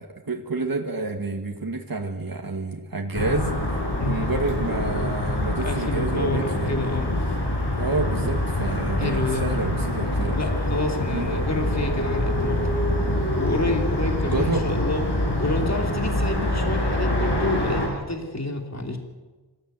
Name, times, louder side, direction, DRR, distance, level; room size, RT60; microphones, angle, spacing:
voice 1, 0.0-6.8 7.8-10.4 11.1-11.3 14.3-14.7, right 3 dB, 55° right, 2 dB, 2.2 m, -29 dB
sound 1, 3.1-17.9, left 1 dB, 80° left, 5.6 m, -25 dB
voice 2, 4.0-4.3 5.6-7.1 9.0-9.5 10.3-12.8 13.4-15.0 15.4-19.0, left 2 dB, 40° left, 3 dB, 3.1 m, -28 dB
26.0 x 15.0 x 9.3 m, 1.3 s
wide cardioid pair, 55°, 41 cm